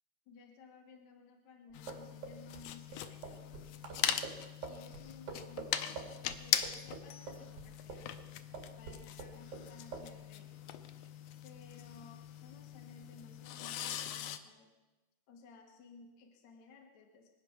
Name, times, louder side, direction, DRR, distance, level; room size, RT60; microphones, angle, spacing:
voice 1, 0.3-3.4 4.7-8.0 8.8-10.7 11.4-14.7 15.3-17.3, left 4 dB, 65° left, 1 dB, 2.8 m, -57 dB
sound 1, 1.7-14.4, left 10 dB, 80° left, 1.5 m, -41 dB
sound 2, 1.7-8.3 8.5-9.7 9.9-10.1, right 5 dB, 65° right, 3.4 m, -46 dB
24.5 x 8.8 x 5.9 m, 1.1 s
omnidirectional pair, 3.8 m